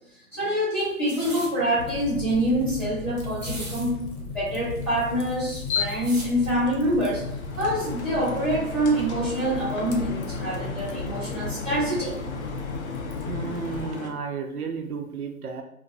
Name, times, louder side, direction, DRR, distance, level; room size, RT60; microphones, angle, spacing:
voice 1, 0.3-4.0 4.3-7.2 7.6-12.1, right 1 dB, 5° left, -10 dB, 1.3 m, -26 dB
sound 1, 0.8-1.5 2.0-2.1 2.3-2.8 3.2-3.9 4.2-4.3 4.5-6.3 7.1-7.3, right 2 dB, 30° right, 0.8 m, -40 dB
Fire, 1.8-13.9, left 3 dB, 75° left, 0.9 m, -35 dB
sound 2, 5.0-14.1, left 5 dB, 50° left, 0.5 m, -36 dB
voice 2, 13.3-15.6, right 5 dB, 85° right, 5 dB, 0.6 m, -33 dB
3.0 x 2.1 x 2.6 m, 0.77 s
hypercardioid pair, 145°, 43 cm